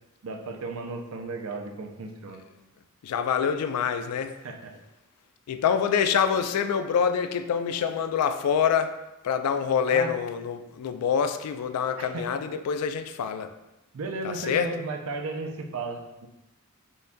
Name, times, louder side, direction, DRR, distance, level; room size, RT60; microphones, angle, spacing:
voice 1, 0.2-2.5 4.4-4.6 9.9-10.1 12.0-12.3 13.9-16.3, right 3 dB, 65° right, 3 dB, 0.5 m, -34 dB
voice 2, 3.0-4.4 5.5-9.0 9.2-13.5 14.2-14.7, left 7 dB, 85° left, 9 dB, 0.3 m, -26 dB
5.6 x 2.6 x 2.2 m, 0.97 s
head